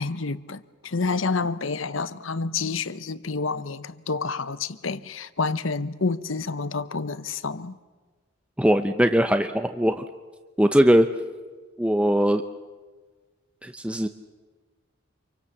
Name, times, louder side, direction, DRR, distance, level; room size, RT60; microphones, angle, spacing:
voice 1, 0.0-7.8, left 4 dB, 75° left, 1.0 m, -29 dB
voice 2, 8.6-10.0 10.6-11.1 11.8-12.4 13.6-14.1, equal, 5° right, 0.7 m, -20 dB
27.5 x 24.0 x 7.2 m
head